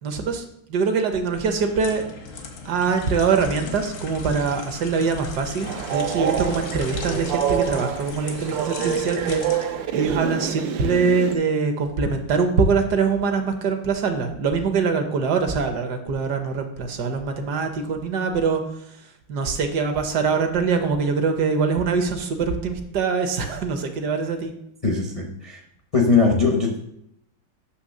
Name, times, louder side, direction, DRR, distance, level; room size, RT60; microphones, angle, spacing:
voice 1, 0.0-2.1 2.6-18.6 19.3-24.5, right 5 dB, 65° right, 6 dB, 1.3 m, -23 dB
sound 1, 1.4-11.4 11.8-12.0, left 4 dB, 85° left, 1.8 m, -38 dB
Train, 5.6-11.4, right 8 dB, 80° right, 1.3 m, -27 dB
voice 2, 24.8-25.6 25.9-26.8, left 4 dB, 50° left, -1 dB, 0.4 m, -20 dB
8.1 x 3.1 x 6.3 m, 0.77 s
omnidirectional pair, 2.0 m